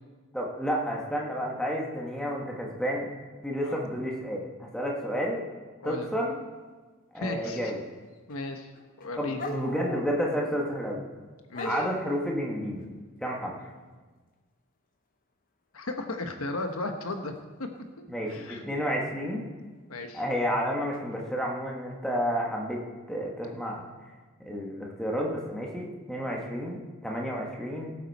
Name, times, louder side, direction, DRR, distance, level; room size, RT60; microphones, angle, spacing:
voice 1, 0.3-3.1 3.4-5.4 5.8-6.4 7.1-7.8 9.2-11.1 11.6-12.9 13.2-13.7 18.1-19.4 20.1-22.8 23.1-23.9 24.4-27.9, equal, 5° left, -2 dB, 1.5 m, -31 dB
voice 2, 7.2-7.7 8.3-8.7 9.0-9.4 11.5-11.8 15.7-17.3 17.6-17.7 18.3-18.6 19.9-20.2, left 2 dB, 75° left, 5 dB, 1.1 m, -35 dB
sound 1, 8.0-8.5 8.7-10.5 11.5-12.1 16.3-16.5 17.7-17.8 20.0-20.1 20.9-21.2, left 1 dB, 40° left, 1.0 m, -38 dB
18.5 x 8.4 x 4.2 m, 1.4 s
head